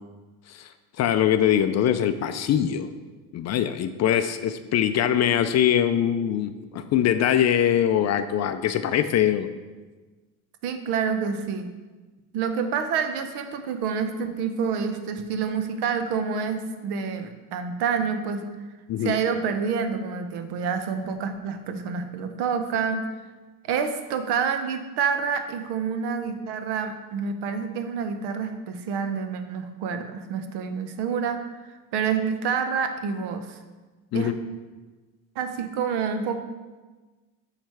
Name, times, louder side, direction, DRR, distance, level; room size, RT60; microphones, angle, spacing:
voice 1, 1.0-2.9 3.3-9.5 18.9-19.1 34.1-34.3, left 10 dB, 40° left, 9 dB, 0.4 m, -22 dB
voice 2, 10.6-11.7 12.3-18.5 19.0-23.0 23.6-33.6 34.1-34.3 35.4-36.4, right 6 dB, 65° right, 8 dB, 0.8 m, -28 dB
8.8 x 3.3 x 4.6 m, 1.3 s
supercardioid pair, 80°, 44 cm